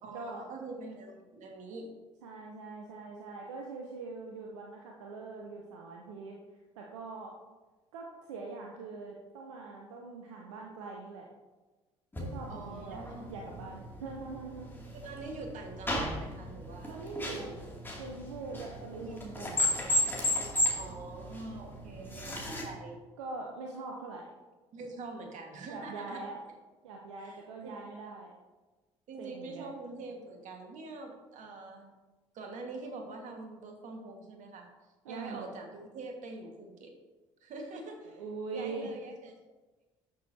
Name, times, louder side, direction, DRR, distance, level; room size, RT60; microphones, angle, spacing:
voice 1, 0.0-1.9 12.5-13.3 14.9-17.5 19.0-19.2 20.7-23.0 24.7-26.2 27.2-27.8 29.1-31.9 32.3-34.7 35.1-36.9 37.4-38.2 38.5-39.3, right 3 dB, 55° right, 3 dB, 1.7 m, -44 dB
voice 2, 2.2-6.4 6.8-7.4 7.9-11.3 12.2-14.7 16.9-17.7 18.0-20.0 23.2-24.3 25.7-26.4 26.8-28.3 29.2-29.7 35.0-35.5 38.2-38.9, right 3 dB, 75° right, 0 dB, 0.8 m, -43 dB
sound 1, 12.1-22.6, left 1 dB, 15° left, 2.5 m, -35 dB
12.5 x 6.3 x 2.8 m, 1.2 s
figure-of-eight pair, 55°, 15 cm